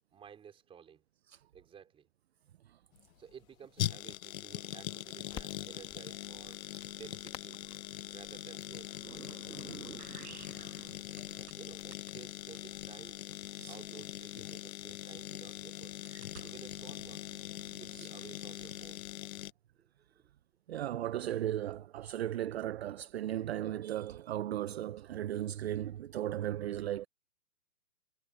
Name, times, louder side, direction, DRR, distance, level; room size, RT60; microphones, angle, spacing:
voice 1, 0.1-1.0 1.5-2.1 3.2-6.6 6.9-7.6 8.1-9.1 11.4-13.2 13.7-16.0 16.4-17.2 17.7-19.1 19.8-20.3, right 8 dB, 10° right, 3.9 m, -54 dB
sound 1, 2.9-19.5, left 13 dB, 65° left, 0.6 m, -42 dB
Crackle, 5.3-13.2, left 10 dB, 10° left, 1.4 m, -55 dB
sound 2, 9.0-11.6 11.9-14.8 15.4-18.9, right 7 dB, 75° right, 6.3 m, -53 dB
voice 2, 20.7-27.1, right 12 dB, 45° right, 0.7 m, -36 dB
hypercardioid pair, 150°, 46 cm